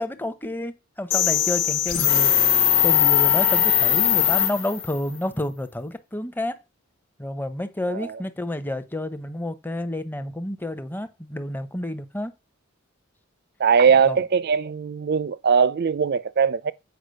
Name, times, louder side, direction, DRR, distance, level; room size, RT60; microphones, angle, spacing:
voice 1, 0.0-2.3 2.8-6.6 7.2-12.3 14.1-14.2, left 1 dB, 10° left, 0.7 m, -30 dB
sound 1, 1.1-5.0, left 9 dB, 85° left, 1.2 m, -20 dB
voice 2, 7.9-8.2 13.6-16.7, right 6 dB, 50° right, 0.4 m, -20 dB
8.1 x 5.0 x 6.3 m
head